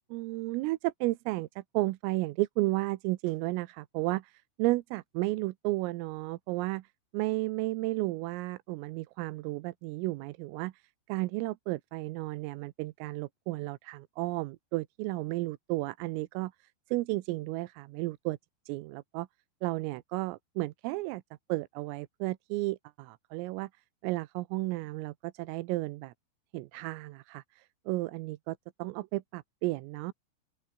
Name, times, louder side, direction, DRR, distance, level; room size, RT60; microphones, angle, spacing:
voice 1, 0.1-18.4 18.7-19.3 19.6-21.2 21.5-23.7 24.0-26.1 26.5-30.1, right 20 dB, 90° right, 3.5 m, -33 dB
open air
omnidirectional pair, 5.8 m